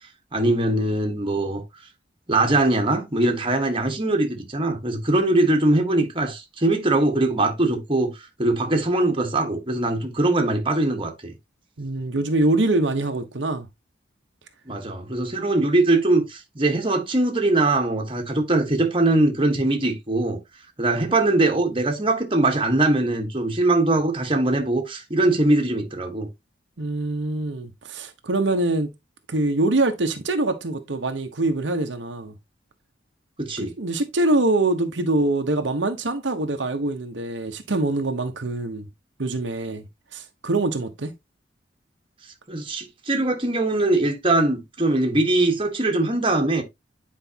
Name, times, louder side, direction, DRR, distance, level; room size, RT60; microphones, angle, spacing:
voice 1, 0.3-1.6 2.3-11.3 14.7-20.4 20.8-26.3 33.4-33.7 42.5-46.6, right 2 dB, 30° right, 1.4 m, -21 dB
voice 2, 11.8-13.7 26.8-28.9 29.3-32.3 33.6-38.9 39.2-39.8 40.1-41.1, right 2 dB, 75° right, 1.0 m, -24 dB
9.3 x 4.7 x 2.8 m
head